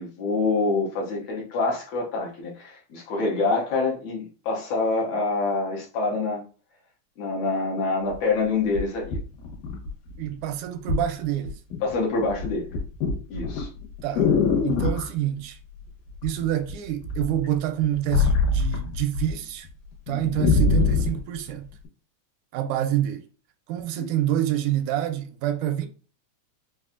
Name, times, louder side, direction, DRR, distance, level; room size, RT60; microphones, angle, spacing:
voice 1, 0.0-6.4 7.2-9.2 11.8-12.7 13.3-13.7 24.0-24.1, left 3 dB, 70° left, 1.7 m, -26 dB
sound 1, 8.1-8.2 8.7-10.2 10.9-11.1 11.4-11.9 12.2-15.1 16.2-16.7 17.0-19.3 19.6-19.7 20.1-21.2 21.8-21.9, left 4 dB, 85° left, 2.7 m, -23 dB
voice 2, 10.2-11.6 14.0-14.3 14.6-15.6 16.2-19.7 20.1-21.7 22.5-23.2 23.7-25.9, right 12 dB, 85° right, 2.0 m, -27 dB
5.4 x 2.3 x 2.4 m
omnidirectional pair, 3.5 m